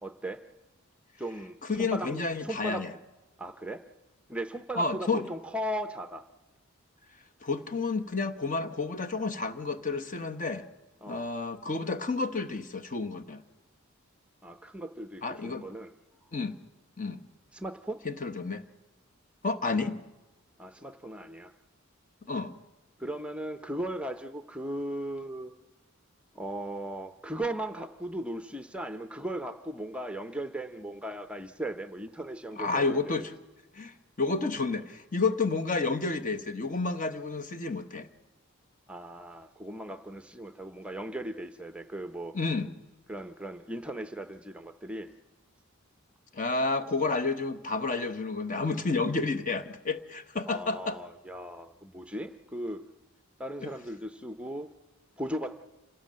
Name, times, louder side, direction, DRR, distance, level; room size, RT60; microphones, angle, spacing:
voice 1, 0.0-0.4 1.2-2.9 3.4-3.8 4.3-6.3 11.0-11.2 14.4-15.9 17.5-18.0 20.6-21.5 23.0-25.5 26.3-33.0 38.9-42.3 43.1-45.1 50.5-52.8 53.4-54.7 55.2-55.5, right 1 dB, 5° right, 9 dB, 0.6 m, -37 dB
voice 2, 1.7-2.9 4.7-5.3 7.4-10.6 11.1-13.4 15.2-15.7 16.3-16.6 17.0-17.2 18.0-18.6 19.4-20.0 22.3-22.6 32.6-33.3 33.7-38.1 42.3-42.7 46.3-51.0 53.6-53.7, left 3 dB, 40° left, 11 dB, 1.0 m, -30 dB
26.5 x 16.0 x 7.5 m, 1.1 s
head